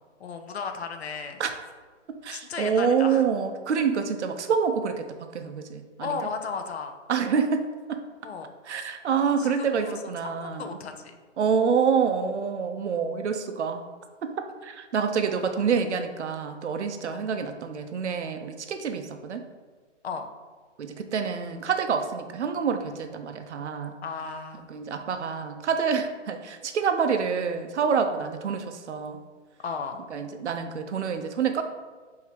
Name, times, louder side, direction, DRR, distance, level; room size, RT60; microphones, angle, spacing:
voice 1, 0.2-1.4 2.3-3.3 6.0-6.9 8.2-8.5 9.4-11.2 17.1-17.2 20.0-20.3 24.0-24.7 29.6-30.0, left 5 dB, 60° left, 6 dB, 0.5 m, -35 dB
voice 2, 2.1-5.0 5.3-6.1 7.1-8.0 8.7-10.8 11.4-13.8 14.2-14.3 14.6-19.4 20.8-23.9 24.7-29.2 30.1-31.6, right 6 dB, 65° right, 7 dB, 0.5 m, -27 dB
4.5 x 2.7 x 3.4 m, 1.4 s
hypercardioid pair, 160°, 37 cm